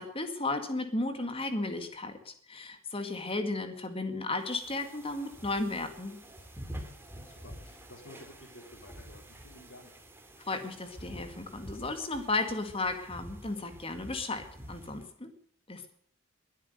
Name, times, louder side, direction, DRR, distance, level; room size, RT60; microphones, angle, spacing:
voice 1, 0.0-6.2 10.5-15.3 15.7-15.9, left 2 dB, 25° left, 8 dB, 2.1 m, -34 dB
sound 1, 4.4-15.1, equal, 10° right, 2.4 m, -48 dB
voice 2, 7.1-9.9, left 1 dB, 60° left, 0 dB, 3.9 m, -52 dB
21.5 x 8.7 x 6.7 m, 0.63 s
head